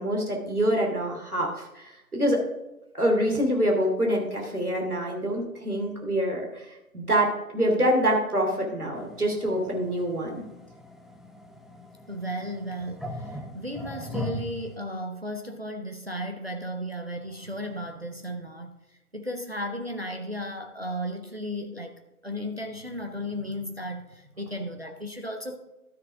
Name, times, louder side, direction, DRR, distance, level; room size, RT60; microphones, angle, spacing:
voice 1, 0.0-2.4 2.9-10.4, equal, 70° right, 0 dB, 2.8 m, -26 dB
sound 1, 8.9-14.8, left 1 dB, ahead, 0.5 m, -40 dB
voice 2, 12.1-18.7 19.1-21.9 22.2-25.6, equal, 40° right, 4 dB, 0.8 m, -35 dB
13.0 x 6.9 x 3.6 m, 0.97 s
figure-of-eight pair, 165°, 46 cm